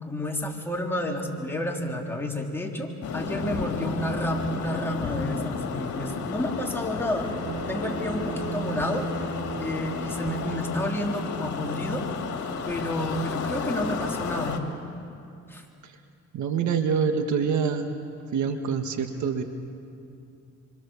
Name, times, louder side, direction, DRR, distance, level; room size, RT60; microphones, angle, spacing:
voice 1, 0.0-7.3 7.7-9.3 9.6-12.1 12.7-14.6 15.5-15.6, left 1 dB, 10° left, -1 dB, 3.6 m, -30 dB
sound 1, 3.0-14.6, left 5 dB, 65° left, 2.6 m, -32 dB
Bowed string instrument, 7.2-11.7, right 4 dB, 50° right, 3.6 m, -36 dB
voice 2, 16.3-18.0 18.3-19.4, right 6 dB, 70° right, 6 dB, 1.7 m, -26 dB
26.5 x 25.0 x 7.2 m, 2.6 s
cardioid pair, 90°, 30 cm